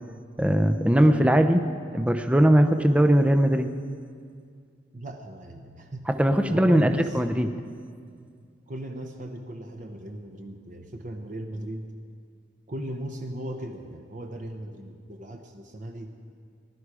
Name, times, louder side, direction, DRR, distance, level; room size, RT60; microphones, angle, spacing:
voice 1, 0.4-1.6 1.9-3.7 6.1-7.5, equal, 5° right, 7 dB, 0.6 m, -20 dB
voice 2, 0.9-1.3 4.9-6.1 6.5-7.2 8.7-11.9 12.7-16.2, right 1 dB, 45° right, 3 dB, 0.9 m, -37 dB
19.5 x 11.5 x 4.9 m, 2.2 s
head